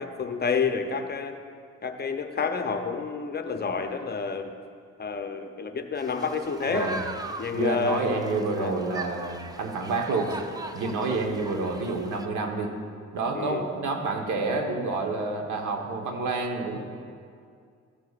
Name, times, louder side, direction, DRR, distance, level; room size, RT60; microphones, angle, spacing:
voice 1, 0.0-1.4 1.8-4.5 5.0-6.9 7.4-8.2 8.6-8.7 13.3-13.7, left 5 dB, 35° left, 6 dB, 0.7 m, -29 dB
sound 1, 6.0-12.3, right 2 dB, 15° right, 0.5 m, -40 dB
voice 2, 6.7-7.0 7.5-10.3 10.7-12.8 13.1-16.8, right 3 dB, 75° right, 3 dB, 1.2 m, -28 dB
14.0 x 8.0 x 2.4 m, 2.2 s
cardioid pair, 90°, 30 cm